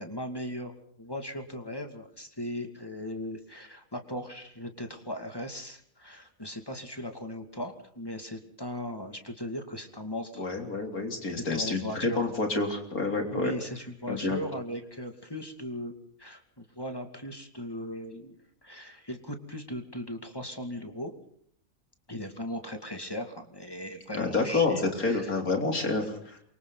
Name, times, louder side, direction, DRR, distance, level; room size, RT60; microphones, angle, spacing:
voice 1, 0.0-10.5 11.5-12.2 13.3-15.9 16.2-18.4 18.6-21.1 22.1-25.4 25.7-26.1, equal, 15° left, 5 dB, 2.5 m, -38 dB
voice 2, 10.4-13.5 14.1-14.4 24.1-26.0, left 3 dB, 90° left, 4 dB, 4.0 m, -28 dB
28.5 x 24.5 x 4.1 m, 0.65 s
omnidirectional pair, 1.5 m